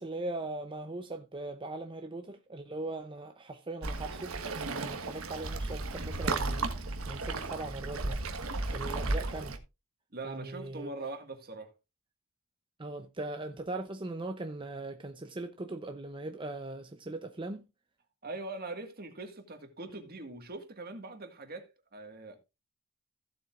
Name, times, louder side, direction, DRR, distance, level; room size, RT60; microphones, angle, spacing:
voice 1, 0.0-4.3 4.7-8.2 8.7-9.6 10.2-10.9 12.8-17.7, right 2 dB, 25° right, 0.7 m, -40 dB
Waves surf, 3.8-9.6, right 3 dB, 80° right, 1.3 m, -34 dB
voice 2, 10.1-11.7 18.2-22.4, right 2 dB, 45° right, 1.9 m, -42 dB
15.5 x 7.6 x 2.5 m
head